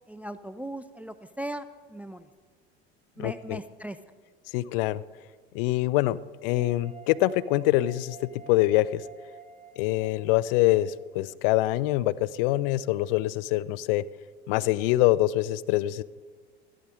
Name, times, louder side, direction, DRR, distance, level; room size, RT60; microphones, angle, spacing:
voice 1, 0.1-1.6 1.9-2.2 3.2-4.0, right 1 dB, 5° right, 12 dB, 0.3 m, -38 dB
voice 2, 3.2-3.6 4.5-5.0 5.5-9.0 9.8-14.0 14.5-16.0, left 16 dB, 60° left, 19 dB, 0.4 m, -25 dB
sound 1, 6.6-11.8, right 3 dB, 20° right, 1.4 m, -50 dB
13.5 x 12.0 x 3.7 m, 1.5 s
hypercardioid pair, 75°, 32 cm